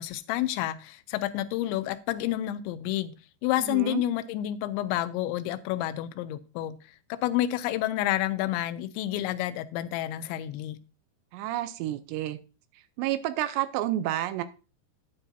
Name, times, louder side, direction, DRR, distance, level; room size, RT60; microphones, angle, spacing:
voice 1, 0.0-3.1 3.4-6.8 7.1-10.8, left 14 dB, 90° left, 2.9 m, -29 dB
voice 2, 3.7-4.0 11.3-12.4 13.0-14.4, right 13 dB, 80° right, 2.7 m, -30 dB
10.0 x 9.8 x 2.6 m
omnidirectional pair, 5.2 m